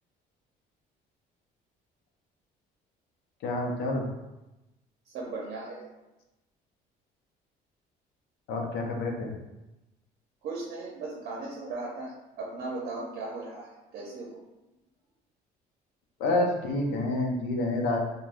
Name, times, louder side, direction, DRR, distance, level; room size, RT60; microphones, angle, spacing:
voice 1, 3.4-4.1 8.5-9.3 16.2-18.0, left 2 dB, 85° left, 1 dB, 0.6 m, -28 dB
voice 2, 5.1-5.8 10.4-14.4, right 3 dB, 70° right, -3 dB, 0.6 m, -37 dB
3.3 x 2.2 x 2.5 m, 1.0 s
cardioid pair, 110°, 17 cm